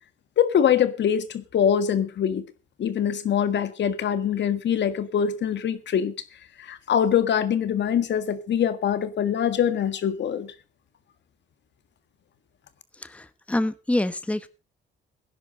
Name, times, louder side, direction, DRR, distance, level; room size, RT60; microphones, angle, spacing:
voice 1, 0.4-2.4 2.8-6.1 6.6-10.5, left 8 dB, 65° left, 1.8 m, -23 dB
voice 2, 13.0-14.5, left 1 dB, 5° left, 1.1 m, -26 dB
17.5 x 10.5 x 4.0 m
cardioid pair, 90°, 20 cm